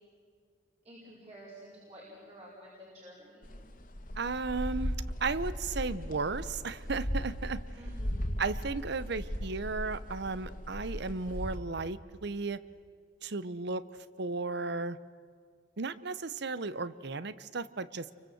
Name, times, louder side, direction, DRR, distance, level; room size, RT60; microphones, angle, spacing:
voice 1, 0.8-3.6 7.7-8.5, equal, 35° right, -5 dB, 5.2 m, -51 dB
sound 1, 3.4-11.6, equal, 50° left, 1.9 m, -37 dB
voice 2, 4.2-7.6 8.4-12.6 13.2-13.8 14.2-15.0 15.8-18.1, right 4 dB, 65° right, 15 dB, 0.8 m, -34 dB
28.5 x 24.0 x 7.9 m, 2.1 s
head